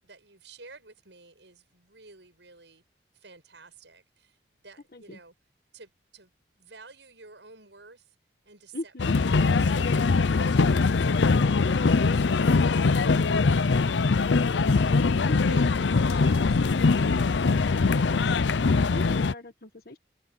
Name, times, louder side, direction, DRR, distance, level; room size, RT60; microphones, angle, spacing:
voice 1, 0.0-2.8 3.1-4.4 4.6-5.3 5.7-8.2 8.4-18.2, right 3 dB, 85° right, 8.0 m, -52 dB
voice 2, 8.7-9.1 15.2-15.6 18.9-20.0, left 1 dB, 55° left, 1.7 m, -38 dB
sound 1, 9.0-19.3, left 4 dB, 90° left, 0.6 m, -22 dB
head